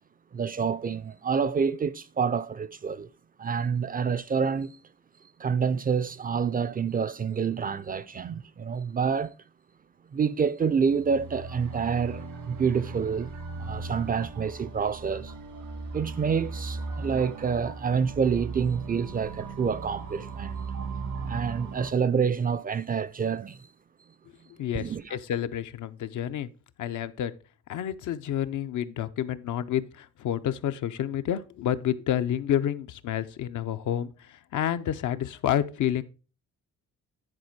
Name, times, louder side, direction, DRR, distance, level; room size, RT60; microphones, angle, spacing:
voice 1, 0.3-3.1 3.4-4.8 5.4-9.4 10.1-13.3 13.6-15.3 15.9-20.6 21.2-23.7 24.7-25.2, right 6 dB, 30° right, 0.4 m, -28 dB
sound 1, 10.9-21.9, right 4 dB, 85° right, 1.7 m, -37 dB
voice 2, 24.6-26.5 26.8-27.3 27.7-36.0, left 10 dB, 70° left, 0.6 m, -29 dB
9.8 x 4.3 x 4.5 m
cardioid pair, 100°, 31 cm